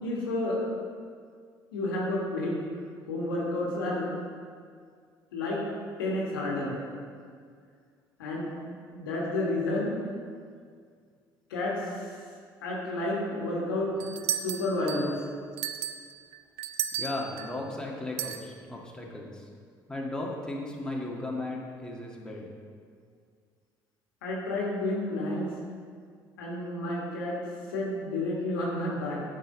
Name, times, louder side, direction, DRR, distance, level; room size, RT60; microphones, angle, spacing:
voice 1, 0.0-0.6 1.7-2.6 3.1-4.1 5.3-5.6 6.0-6.8 8.2-8.5 8.9-10.0 11.5-12.1 12.6-15.2 24.2-25.5 26.4-27.4 27.7-29.2, left 1 dB, 80° left, -3 dB, 1.5 m, -30 dB
sound 1, 14.0-15.2 15.6-17.5 18.2-18.4, right 10 dB, 65° right, 0.5 m, -33 dB
voice 2, 17.0-19.5 19.9-22.5, left 2 dB, 5° left, -2 dB, 1.7 m, -36 dB
8.6 x 5.3 x 5.3 m, 2.1 s
hypercardioid pair, 55°, 11 cm